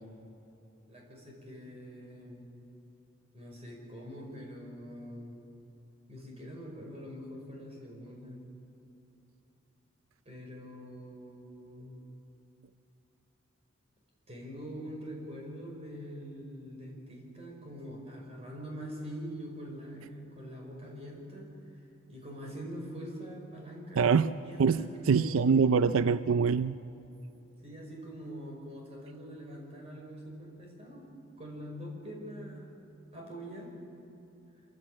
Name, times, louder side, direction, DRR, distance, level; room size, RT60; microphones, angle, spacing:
voice 1, 0.9-2.5 3.3-5.4 6.1-8.4 10.3-12.0 14.3-21.5 21.8-25.7 27.6-32.8 33.1-33.7, equal, 30° right, -1 dB, 5.2 m, -44 dB
voice 2, 24.0-24.3 24.6-24.8 25.1-26.8, right 5 dB, 90° right, 14 dB, 0.5 m, -24 dB
26.5 x 15.0 x 8.7 m, 2.9 s
head